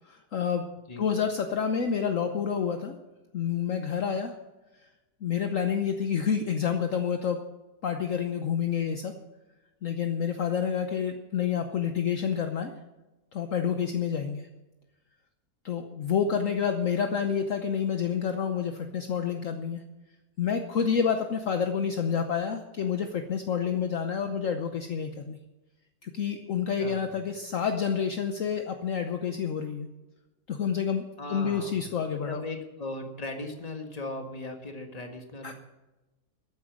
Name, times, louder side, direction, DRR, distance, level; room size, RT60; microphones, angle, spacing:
voice 1, 0.1-0.6 1.0-3.0 3.3-4.3 5.2-7.4 7.8-9.1 9.8-12.7 13.3-14.5 15.6-19.8 20.4-25.4 26.0-29.9 30.5-32.4 35.4-35.5, left 7 dB, 55° left, 6 dB, 1.2 m, -28 dB
voice 2, 26.8-27.1 31.2-31.9 32.2-35.5, left 2 dB, 25° left, 4 dB, 1.7 m, -38 dB
14.0 x 8.9 x 7.4 m, 1.1 s
omnidirectional pair, 1.7 m